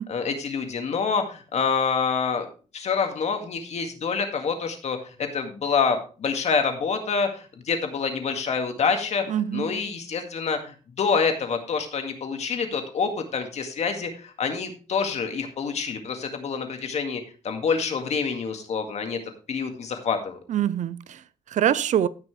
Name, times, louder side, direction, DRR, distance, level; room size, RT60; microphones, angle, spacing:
voice 1, 0.1-2.5 2.7-9.2 9.5-19.2 19.5-20.4, left 5 dB, 55° left, 2.0 m, -27 dB
voice 2, 9.3-9.7 20.5-22.1, right 10 dB, 65° right, 0.5 m, -25 dB
16.0 x 6.0 x 3.2 m
cardioid pair, 145°, 14 cm